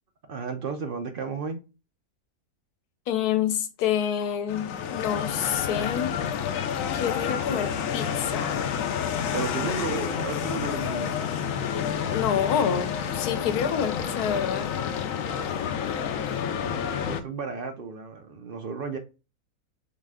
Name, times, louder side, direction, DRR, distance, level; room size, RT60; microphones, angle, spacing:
voice 1, 0.3-1.6 9.3-11.2 16.5-19.0, right 5 dB, 65° right, 0.5 m, -34 dB
voice 2, 3.1-6.2 6.9-8.7 11.8-14.7, left 8 dB, 85° left, 1.2 m, -28 dB
sound 1, 4.5-17.2, left 8 dB, 70° left, 0.9 m, -29 dB
4.0 x 3.2 x 3.5 m
omnidirectional pair, 1.6 m